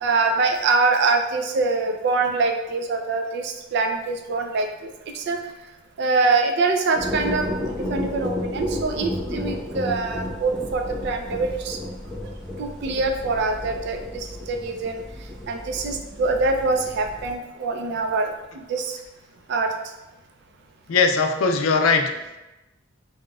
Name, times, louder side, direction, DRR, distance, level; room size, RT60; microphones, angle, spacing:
voice 1, 0.0-4.7 5.1-5.4 6.0-11.8 12.6-15.0 15.5-18.3 18.7-19.0 19.5-19.7, right 3 dB, 55° right, 4 dB, 0.4 m, -24 dB
sound 1, 6.9-17.3, left 1 dB, ahead, 0.8 m, -32 dB
voice 2, 20.9-22.4, left 4 dB, 80° left, 5 dB, 0.4 m, -20 dB
4.1 x 2.2 x 2.3 m, 0.99 s
head